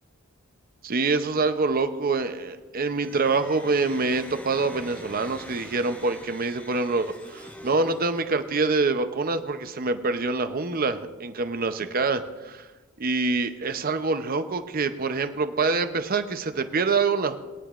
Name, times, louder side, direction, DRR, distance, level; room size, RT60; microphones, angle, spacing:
voice 1, 0.8-12.7 13.0-17.4, right 3 dB, 45° right, 9 dB, 0.7 m, -25 dB
sound 1, 2.9-8.6, left 1 dB, 5° left, 0.9 m, -44 dB
20.5 x 9.9 x 2.5 m, 1.1 s
head